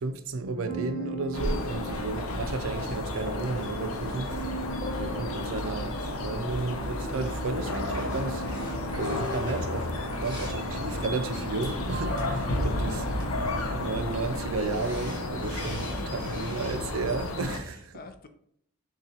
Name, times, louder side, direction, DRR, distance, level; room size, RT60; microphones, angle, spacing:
voice 1, 0.0-4.3 5.0-6.0 6.2-8.4 8.9-9.9 10.2-13.1 13.7-18.0, right 3 dB, 70° right, 0.4 m, -33 dB
sound 1, 0.5-13.3 14.6-16.8, right 1 dB, ahead, 1.5 m, -41 dB
sound 2, 1.3-17.6, left 1 dB, 80° left, 0.6 m, -32 dB
sound 3, 7.9-16.8, equal, 20° left, 1.7 m, -47 dB
voice 2, 15.8-16.6 17.4-18.3, left 4 dB, 45° left, 0.4 m, -46 dB
6.5 x 2.3 x 2.8 m
head